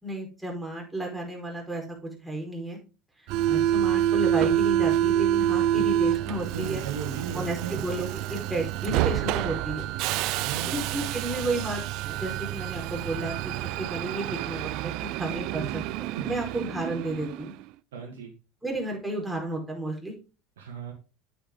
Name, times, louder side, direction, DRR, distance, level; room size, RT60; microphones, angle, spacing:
voice 1, 0.0-2.8 3.5-6.8 7.3-9.9 10.2-17.5 18.6-20.1, right 1 dB, 5° right, -1 dB, 4.8 m, -33 dB
Subway metro underground, 3.3-17.6, right 12 dB, 55° right, 0.4 m, -28 dB
voice 2, 6.5-7.8 10.4-11.0 11.3-11.5 15.5-15.8 16.2-16.3 17.9-18.3 20.6-20.9, right 6 dB, 75° right, 1 dB, 1.8 m, -36 dB
8.8 x 8.5 x 3.8 m, 0.31 s
hypercardioid pair, 75°, 0 cm